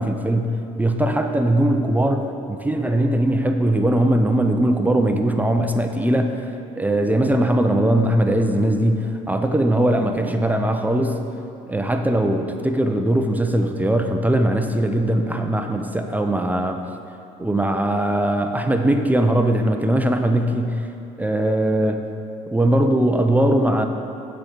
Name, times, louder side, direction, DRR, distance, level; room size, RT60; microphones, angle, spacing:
voice 1, 0.0-6.4 6.8-11.2 11.7-16.8 17.4-20.9 21.2-22.0 22.5-23.8, right 1 dB, 10° right, 5 dB, 0.7 m, -20 dB
14.5 x 5.2 x 4.6 m, 2.7 s
supercardioid pair, 80°, 15 cm